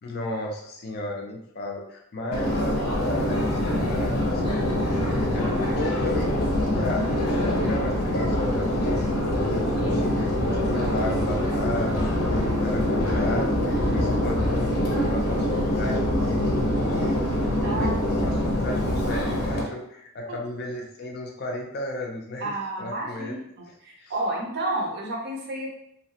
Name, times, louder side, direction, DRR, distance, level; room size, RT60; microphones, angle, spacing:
voice 1, 0.0-23.4 24.0-24.1, left 1 dB, 45° left, 0 dB, 0.4 m, -34 dB
Subway metro underground, 2.3-19.6, left 1 dB, 90° left, 0.7 m, -24 dB
voice 2, 17.6-18.2 20.3-20.4 22.4-23.4 23.8-25.7, right 1 dB, 50° right, -1 dB, 0.6 m, -30 dB
2.7 x 2.1 x 2.7 m, 0.74 s
head